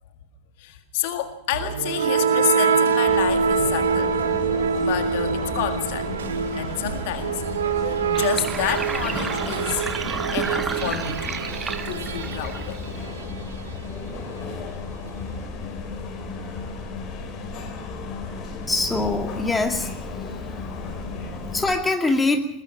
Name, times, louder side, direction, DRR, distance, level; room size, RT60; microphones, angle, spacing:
voice 1, 0.6-4.2 4.8-6.1 6.5-7.4 7.8-9.8 10.3-11.4 11.8-12.8 20.9-21.4, left 11 dB, 50° left, 7 dB, 1.8 m, -29 dB
sound 1, 1.5-13.4, right 6 dB, 65° right, 1.3 m, -25 dB
sound 2, 3.1-21.7, left 3 dB, 35° left, 5.1 m, -34 dB
Sink (filling or washing), 8.1-13.1, right 5 dB, 15° right, 1.0 m, -32 dB
voice 2, 18.7-20.6 21.5-22.5, left 2 dB, 10° left, 4 dB, 2.4 m, -24 dB
21.5 x 21.5 x 5.7 m, 0.80 s
figure-of-eight pair, 90°, 0 cm